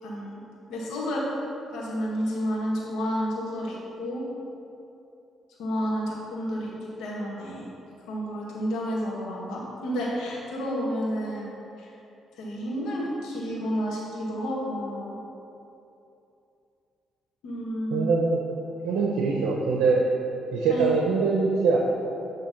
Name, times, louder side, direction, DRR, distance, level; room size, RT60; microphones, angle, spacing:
voice 1, 0.0-0.4 0.7-1.3 1.7-4.3 5.6-7.7 8.1-11.9 12.3-15.2 17.4-18.1 20.7-20.9, equal, 85° left, -4 dB, 1.5 m, -30 dB
voice 2, 17.9-18.4 18.8-20.0 20.5-21.8, right 4 dB, 85° right, -1 dB, 0.7 m, -23 dB
8.6 x 3.3 x 5.8 m, 2.7 s
cardioid pair, 90°, 0 cm